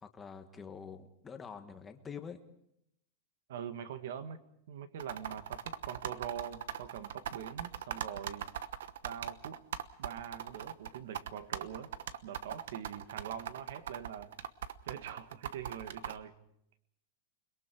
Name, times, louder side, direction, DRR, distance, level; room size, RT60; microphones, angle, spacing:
voice 1, 0.0-2.4, left 6 dB, 10° left, 6 dB, 1.5 m, -46 dB
voice 2, 3.5-4.4 4.7-8.5 9.0-9.6 10.0-11.9 12.2-14.3 14.8-16.3, right 8 dB, 70° right, 10 dB, 1.8 m, -43 dB
sound 1, 5.0-16.2, right 10 dB, 90° right, 1.1 m, -40 dB
29.0 x 22.0 x 4.7 m, 0.76 s
supercardioid pair, 170°, 0 cm